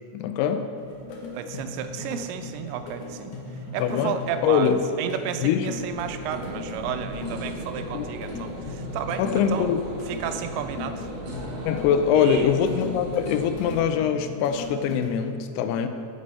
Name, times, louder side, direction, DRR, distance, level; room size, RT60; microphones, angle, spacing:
voice 1, 0.1-0.7 3.8-4.2 4.4-4.8 5.4-5.7 7.9-8.1 9.2-9.8 11.7-15.9, left 8 dB, 90° left, 9 dB, 2.6 m, -23 dB
sound 1, 0.8-15.2, left 3 dB, 65° left, 2.2 m, -38 dB
voice 2, 1.3-3.3 3.7-9.7 10.1-11.1 12.2-12.5, right 9 dB, 85° right, 8 dB, 2.6 m, -32 dB
sound 2, 5.5-13.8, right 1 dB, 60° right, 2.3 m, -38 dB
9.7 x 6.7 x 4.2 m, 2.3 s
omnidirectional pair, 4.5 m